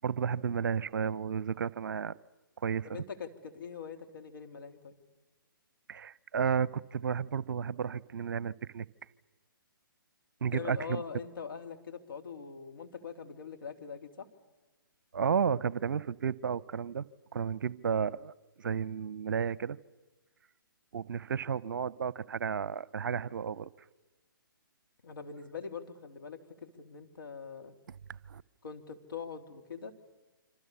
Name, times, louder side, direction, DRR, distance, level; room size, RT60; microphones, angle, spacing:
voice 1, 0.0-2.2 2.6-2.9 5.9-8.9 10.4-11.0 15.1-17.1 17.3-18.3 18.6-19.8 20.9-23.7 28.3-28.4, right 7 dB, 60° right, 23 dB, 0.7 m, -32 dB
voice 2, 2.8-5.0 10.5-14.3 25.0-27.7 28.6-29.9, left 6 dB, 70° left, 5 dB, 3.2 m, -43 dB
27.5 x 25.5 x 6.9 m, 1.2 s
figure-of-eight pair, 130°, 12 cm